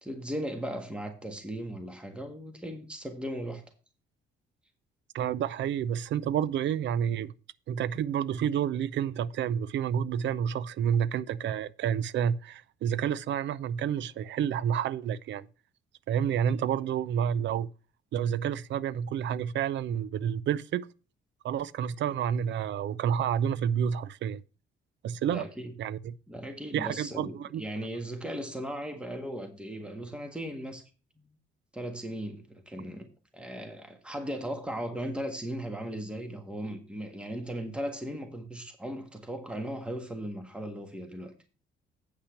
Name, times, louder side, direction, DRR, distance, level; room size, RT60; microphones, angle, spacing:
voice 1, 0.0-3.6 25.3-25.7 26.3-30.8 31.2-31.3 31.7-33.1 33.3-41.3, equal, 5° right, 1.6 m, -37 dB
voice 2, 5.1-7.3 7.7-15.5 16.1-17.7 18.1-20.9 21.4-24.4 25.0-25.4 25.8-26.1 26.7-27.6, right 8 dB, 65° right, 0.5 m, -29 dB
8.6 x 5.7 x 5.8 m
cardioid pair, 90°, 20 cm